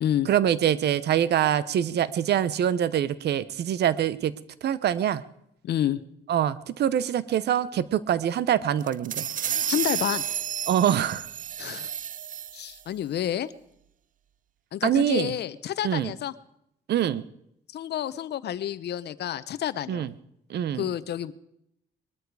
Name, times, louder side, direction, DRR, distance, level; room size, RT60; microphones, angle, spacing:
voice 1, 0.3-4.3 4.6-5.2 6.3-9.3 10.7-11.3 14.8-15.3 15.8-16.1 16.9-17.2 19.9-20.1 20.5-20.9, right 10 dB, 75° right, 17 dB, 0.8 m, -24 dB
voice 2, 5.6-6.0 9.7-10.2 11.6-11.9 12.5-13.5 14.7-16.3 17.7-20.1 20.8-21.3, left 11 dB, 75° left, 16 dB, 0.8 m, -29 dB
sound 1, 8.8-12.8, right 9 dB, 50° right, 0.5 m, -31 dB
21.0 x 13.0 x 4.8 m, 0.77 s
cardioid pair, 90°, 17 cm